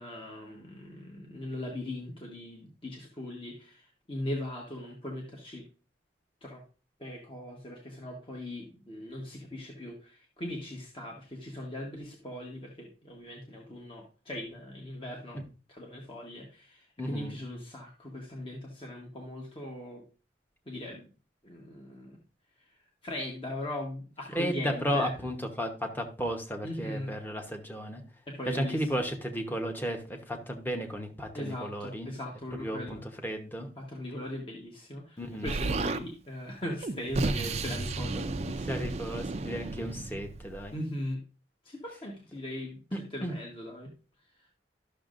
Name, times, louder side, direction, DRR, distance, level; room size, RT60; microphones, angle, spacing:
voice 1, 0.0-5.6 6.4-6.6 7.0-15.4 15.7-20.0 20.7-21.1 21.4-22.2 22.6-22.7 23.0-25.1 26.6-27.1 28.3-28.9 31.3-33.0 33.8-38.8 40.7-41.2 41.6-42.8 43.1-43.9, left 1 dB, 30° left, -1 dB, 1.2 m, -39 dB
voice 2, 17.0-17.3 24.3-28.0 28.5-32.1 32.6-33.7 35.2-35.5 38.0-38.3 38.7-40.8 43.2-43.3, equal, 10° left, 3 dB, 1.0 m, -34 dB
Explosion, 35.5-36.0 36.8-40.7, right 3 dB, 35° right, 0.4 m, -33 dB
12.5 x 6.3 x 2.5 m, 0.36 s
head